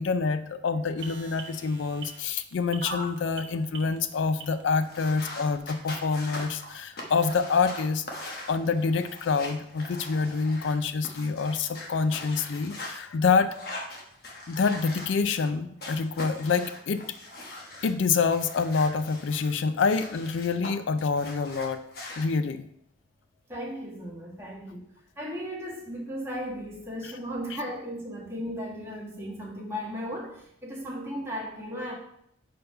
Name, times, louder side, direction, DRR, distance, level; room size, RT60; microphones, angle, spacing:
voice 1, 0.0-13.5 14.5-17.0 17.8-21.8 22.2-22.7 27.0-27.1 27.5-27.6, left 5 dB, 75° left, 11 dB, 0.4 m, -27 dB
sound 1, 1.0-4.9 5.5-5.6, right 3 dB, 60° right, 0.9 m, -40 dB
sound 2, 4.8-13.0 13.5-15.5 15.8-17.9 18.3-20.7 21.0-22.2, left 1 dB, 50° left, 1.2 m, -41 dB
voice 2, 23.5-24.9 25.2-31.9, equal, 15° right, -4 dB, 1.5 m, -36 dB
5.2 x 4.5 x 5.4 m, 0.72 s
head